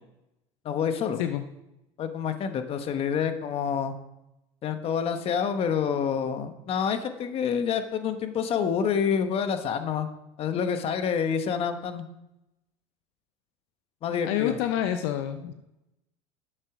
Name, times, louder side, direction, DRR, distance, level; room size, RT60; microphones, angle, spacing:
voice 1, 0.6-1.2 2.0-3.9 4.6-10.1 10.4-12.0 14.0-14.6, left 7 dB, 45° left, 8 dB, 1.2 m, -27 dB
voice 2, 14.2-15.5, left 11 dB, 80° left, 8 dB, 0.7 m, -27 dB
11.0 x 7.4 x 4.9 m, 0.90 s
supercardioid pair, 105°, 14 cm